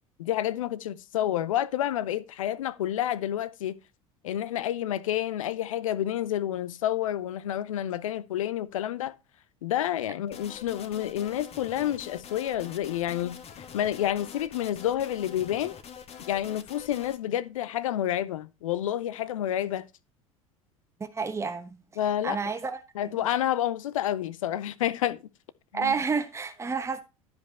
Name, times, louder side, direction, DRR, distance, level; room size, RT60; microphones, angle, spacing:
voice 1, 0.2-3.8 4.2-9.2 9.6-13.4 13.7-15.7 16.3-19.9 22.0-22.4 22.9-25.2 25.7-25.9, left 11 dB, 70° left, 0.7 m, -29 dB
sound 1, 10.3-17.2, left 7 dB, 35° left, 1.5 m, -45 dB
voice 2, 21.0-21.8 22.2-23.3 25.7-27.0, right 5 dB, 15° right, 1.1 m, -30 dB
12.5 x 5.2 x 4.2 m
figure-of-eight pair, 75°, 18 cm